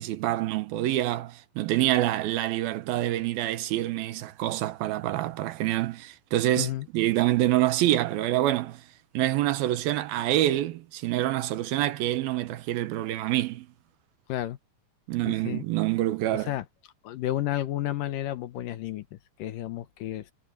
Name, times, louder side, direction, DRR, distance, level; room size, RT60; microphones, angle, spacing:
voice 1, 0.0-8.8 9.1-13.7 15.1-16.5, right 14 dB, 80° right, 2.8 m, -26 dB
voice 2, 15.3-15.6 16.3-16.7 17.0-20.3, left 13 dB, 70° left, 2.3 m, -32 dB
omnidirectional pair, 4.3 m